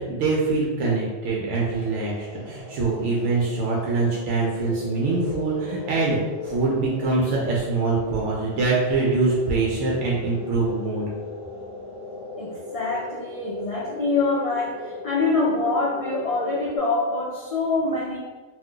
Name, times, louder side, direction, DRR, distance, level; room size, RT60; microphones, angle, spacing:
voice 1, 0.0-11.0, right 3 dB, 85° right, -4 dB, 0.9 m, -24 dB
sound 1, 1.7-16.8, left 2 dB, 35° left, 0.8 m, -39 dB
voice 2, 12.4-18.2, left 3 dB, 65° left, -5 dB, 0.3 m, -25 dB
2.5 x 2.2 x 3.7 m, 1.3 s
omnidirectional pair, 1.2 m